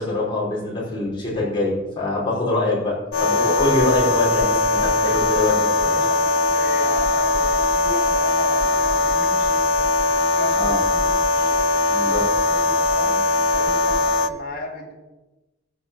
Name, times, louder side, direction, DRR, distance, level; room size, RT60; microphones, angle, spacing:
voice 1, 0.0-5.6 5.8-6.0 10.5-10.8 11.9-12.2, left 2 dB, 25° left, -5 dB, 5.0 m, -24 dB
sound 1, 3.1-14.3, left 2 dB, 70° left, 0.6 m, -20 dB
voice 2, 5.8-9.6 10.0-11.6 12.4-14.9, left 2 dB, 50° left, -1 dB, 2.7 m, -35 dB
15.0 x 5.8 x 7.1 m, 1.1 s
head